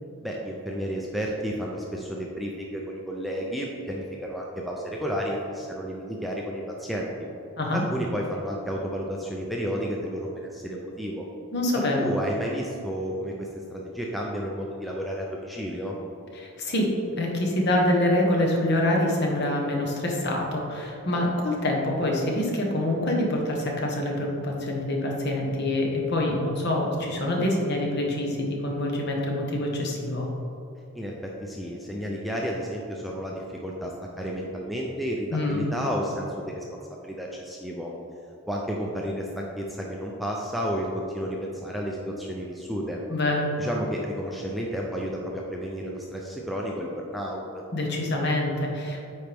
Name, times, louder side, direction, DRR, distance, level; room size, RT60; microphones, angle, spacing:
voice 1, 0.2-7.1 7.7-11.3 11.9-15.9 30.9-36.6 37.0-37.9 38.5-43.0 43.6-47.6, equal, ahead, -2 dB, 0.4 m, -32 dB
voice 2, 11.5-12.1 16.3-30.3 35.3-35.6 43.1-43.5 47.7-49.0, left 1 dB, 50° left, 0 dB, 1.1 m, -26 dB
9.0 x 4.5 x 3.5 m, 2.8 s
head